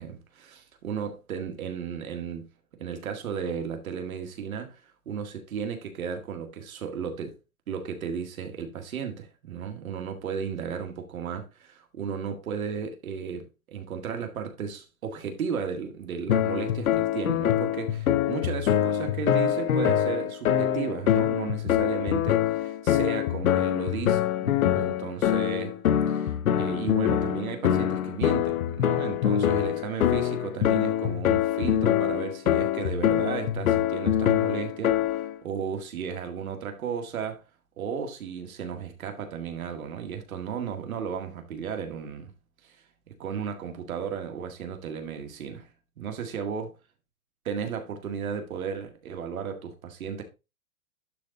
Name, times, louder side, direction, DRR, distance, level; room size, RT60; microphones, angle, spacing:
voice 1, 0.0-2.5 2.8-4.8 5.1-7.4 7.7-25.7 26.1-37.4 37.8-42.3 42.6-42.8 43.2-45.7 46.0-46.7 47.5-50.2, right 7 dB, 75° right, 2.0 m, -34 dB
sound 1, 16.3-35.4, left 11 dB, 80° left, 0.9 m, -24 dB
11.5 x 3.9 x 3.9 m
hypercardioid pair, 140°, 42 cm